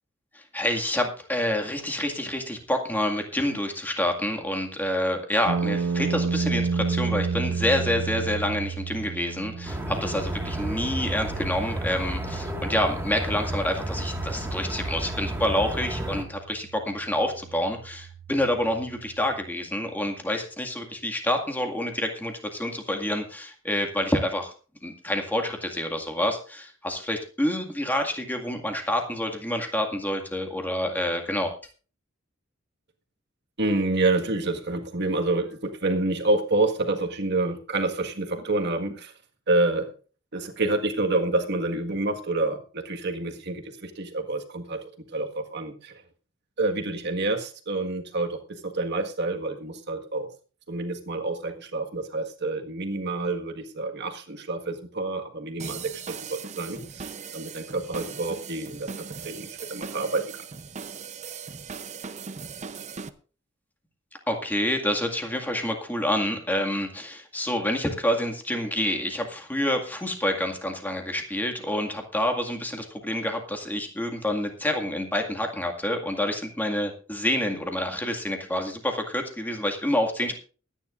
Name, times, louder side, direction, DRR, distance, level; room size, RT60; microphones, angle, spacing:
voice 1, 0.3-24.5 24.8-31.5 64.3-80.4, left 1 dB, 10° left, 3 dB, 2.0 m, -28 dB
sound 1, 5.5-19.5, right 5 dB, 80° right, 0.5 m, -32 dB
sound 2, 9.7-16.2, right 1 dB, 10° right, 1.8 m, -32 dB
voice 2, 33.6-39.1 39.5-39.9 40.3-44.8 45.1-46.0 46.6-50.3 50.7-55.8 56.1-57.1 57.3-60.4, right 2 dB, 60° right, 4 dB, 1.7 m, -28 dB
sound 3, 55.6-63.1, right 5 dB, 35° right, 0.7 m, -39 dB
23.0 x 10.0 x 2.5 m, 0.38 s
head